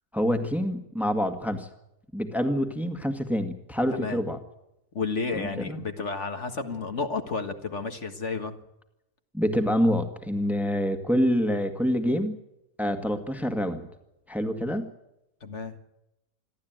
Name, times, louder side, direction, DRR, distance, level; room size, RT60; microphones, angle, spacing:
voice 1, 0.1-1.7 2.1-4.4 5.3-5.8 9.3-12.4 12.8-13.9 14.3-14.9, equal, ahead, 7 dB, 1.9 m, -26 dB
voice 2, 4.9-8.6 15.4-15.7, left 4 dB, 55° left, 6 dB, 2.0 m, -31 dB
27.5 x 12.5 x 9.1 m, 0.87 s
omnidirectional pair, 1.5 m